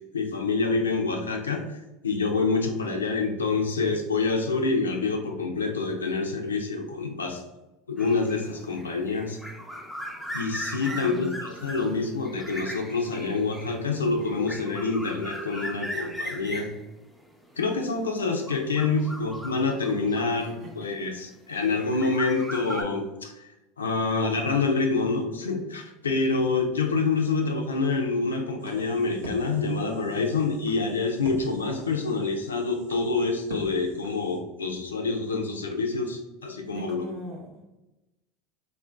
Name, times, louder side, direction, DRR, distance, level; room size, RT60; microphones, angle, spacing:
voice 1, 0.1-7.4 7.9-9.4 10.3-16.7 17.6-23.5 23.8-37.0, left 4 dB, 90° left, 3 dB, 0.4 m, -27 dB
sound 1, 8.0-20.9 21.6-22.8, equal, ahead, 0.4 m, -39 dB
voice 2, 10.8-12.0 20.4-20.9 36.7-37.7, right 1 dB, 50° right, 0 dB, 0.8 m, -41 dB
sound 2, 28.6-34.4, right 2 dB, 80° right, 0.6 m, -44 dB
2.5 x 2.1 x 3.3 m, 0.99 s
hypercardioid pair, 80°, 0 cm